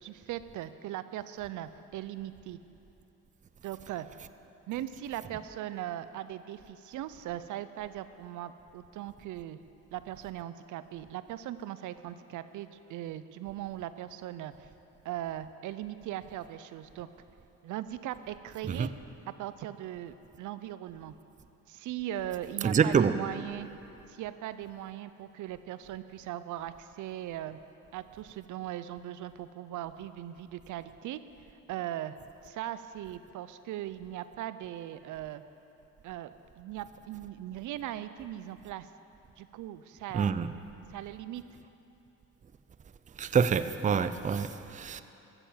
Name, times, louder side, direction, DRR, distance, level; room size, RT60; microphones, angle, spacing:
voice 1, 0.0-2.6 3.6-4.1 4.7-9.6 9.9-14.7 15.0-17.1 17.6-18.9 19.3-21.1 21.7-23.7 24.1-27.6 27.9-31.2 31.7-32.2 32.4-35.4 36.0-36.3 36.6-38.9 39.4-40.3 40.9-41.4, right 12 dB, 80° right, 13 dB, 0.5 m, -39 dB
voice 2, 22.6-23.1 40.1-40.5 43.2-45.0, right 6 dB, 25° right, 12 dB, 0.5 m, -26 dB
14.5 x 6.9 x 7.3 m, 2.9 s
cardioid pair, 90°, 30 cm